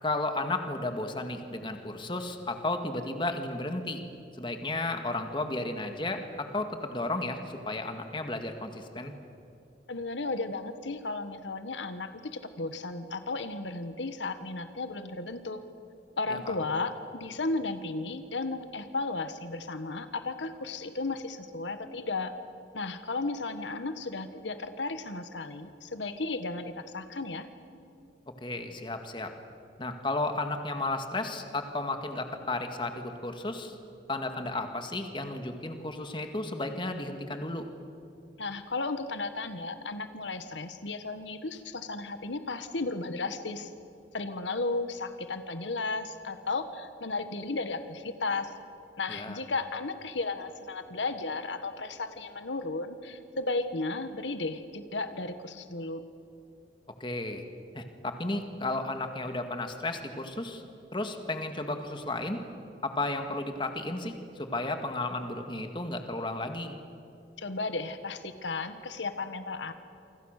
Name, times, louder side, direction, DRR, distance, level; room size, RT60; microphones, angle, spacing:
voice 1, 0.0-4.0 4.3-9.1 16.3-16.5 28.4-29.3 29.8-33.7 34.1-37.7 49.1-49.4 57.0-57.5 57.7-60.6 60.9-62.4 62.8-66.8, left 2 dB, 25° left, 6 dB, 1.9 m, -33 dB
voice 2, 9.9-15.6 16.2-22.3 22.7-27.5 38.4-43.7 44.1-48.5 49.0-56.0 67.4-69.7, left 3 dB, 85° left, 9 dB, 1.5 m, -34 dB
28.0 x 25.5 x 6.7 m, 2.7 s
head